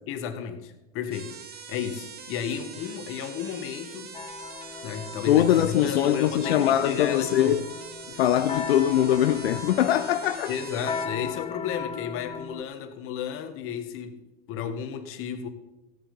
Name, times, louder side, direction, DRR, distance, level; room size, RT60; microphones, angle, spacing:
voice 1, 0.1-4.1 4.8-7.6 10.5-14.2 14.5-15.5, left 8 dB, 45° left, 1.6 m, -33 dB
sound 1, 1.1-11.1, right 6 dB, 30° right, 1.6 m, -43 dB
sound 2, 4.1-12.6, left 5 dB, 20° left, 0.6 m, -37 dB
voice 2, 5.3-7.6 8.1-10.5, left 11 dB, 80° left, 0.6 m, -22 dB
15.5 x 7.3 x 5.4 m
hypercardioid pair, 110°, 31 cm